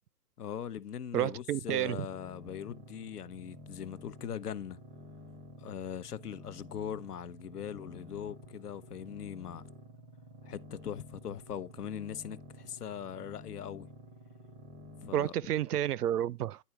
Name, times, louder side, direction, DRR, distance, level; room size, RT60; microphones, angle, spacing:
voice 1, 0.4-4.8 5.6-9.6 10.5-13.9 15.0-15.4, left 9 dB, 75° left, 0.8 m, -41 dB
voice 2, 1.1-2.0 15.1-16.6, right 11 dB, 75° right, 0.6 m, -30 dB
sound 1, 1.9-15.2, left 1 dB, 10° right, 0.5 m, -51 dB
10.0 x 4.1 x 4.5 m
hypercardioid pair, 145°, 46 cm